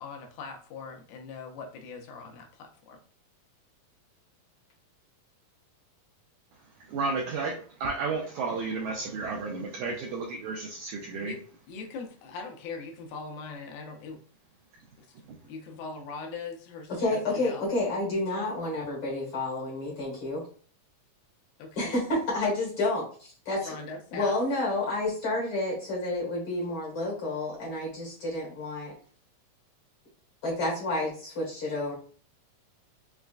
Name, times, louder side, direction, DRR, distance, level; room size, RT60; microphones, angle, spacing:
voice 1, 0.0-3.0 11.2-11.4 11.7-14.2 15.0-15.2 15.5-17.7 21.6-21.9 23.6-24.4, left 4 dB, 85° left, 3 dB, 2.5 m, -41 dB
voice 2, 6.9-11.4 15.3-15.4, right 4 dB, 90° right, 0 dB, 1.7 m, -32 dB
voice 3, 17.0-20.4 21.8-23.7 24.1-28.9 30.4-31.9, left 2 dB, 50° left, -4 dB, 1.7 m, -30 dB
6.0 x 2.3 x 2.4 m, 0.43 s
omnidirectional pair, 4.1 m